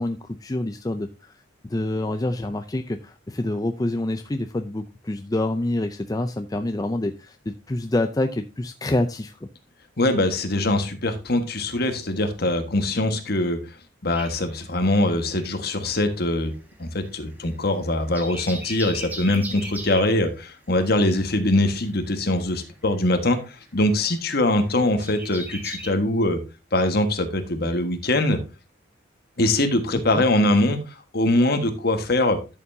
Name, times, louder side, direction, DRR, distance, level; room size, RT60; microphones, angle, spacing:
voice 1, 0.0-1.3 1.6-9.5 30.1-30.2, left 1 dB, 20° left, 7 dB, 0.5 m, -27 dB
voice 2, 10.0-13.6 14.0-16.5 16.8-26.4 26.7-28.4 29.4-32.4, left 1 dB, 55° left, 6 dB, 1.6 m, -22 dB
sound 1, 14.1-15.5 15.8-25.9, right 1 dB, 10° right, 1.6 m, -39 dB
12.0 x 7.0 x 2.7 m, 0.29 s
head